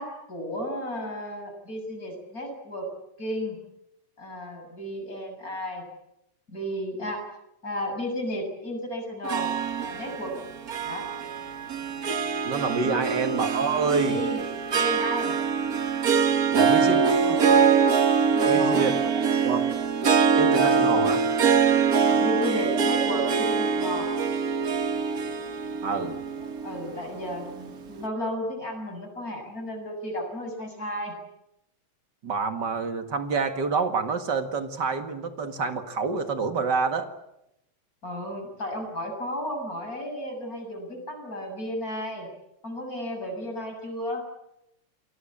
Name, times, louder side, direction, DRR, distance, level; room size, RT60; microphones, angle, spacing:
voice 1, 0.0-2.9 3.2-3.6 4.2-5.8 6.5-7.3 7.6-9.5 9.8-10.3 10.9-11.1 12.8-13.2 14.0-15.3 16.8-17.6 18.3-19.2 20.8-21.1 22.0-24.1 26.4-31.2 38.0-42.3 42.6-44.2, equal, 25° left, 3 dB, 7.4 m, -33 dB
Harp, 9.2-27.7, right 6 dB, 70° right, 0.8 m, -24 dB
voice 2, 12.4-14.2 16.5-17.4 18.4-19.0 19.4-19.7 20.4-21.2 25.8-26.2 32.2-37.1, right 4 dB, 40° right, 7 dB, 2.0 m, -27 dB
28.0 x 20.5 x 8.7 m, 0.84 s
omnidirectional pair, 3.8 m